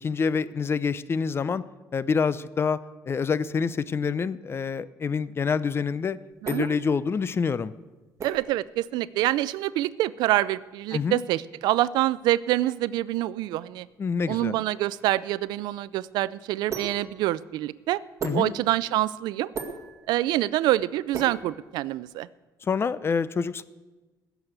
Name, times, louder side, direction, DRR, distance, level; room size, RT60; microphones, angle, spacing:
voice 1, 0.0-1.6 1.9-2.8 3.0-6.2 6.5-7.7 10.9-11.2 14.0-14.5 18.2-18.5 22.6-23.6, left 5 dB, 35° left, 17 dB, 0.6 m, -26 dB
sound 1, 5.8-22.2, right 5 dB, 40° right, 2.2 m, -41 dB
voice 2, 8.2-13.9 14.3-18.0 18.3-19.5 20.1-22.3, right 15 dB, 85° right, 18 dB, 0.4 m, -26 dB
16.0 x 7.1 x 8.0 m, 1.2 s
cardioid pair, 95°, 7 cm